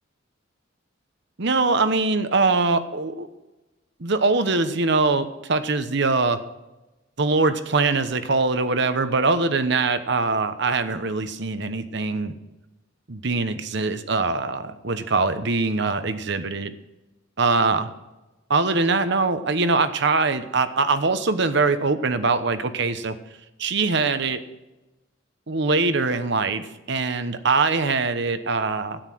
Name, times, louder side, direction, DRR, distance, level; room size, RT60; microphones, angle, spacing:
voice 1, 1.4-3.3 4.0-6.4 7.2-12.4 13.1-16.7 17.4-17.9 18.5-23.2 23.6-24.4 25.5-29.0, right 3 dB, 55° right, 11 dB, 1.0 m, -22 dB
13.0 x 9.7 x 6.2 m, 1.0 s
head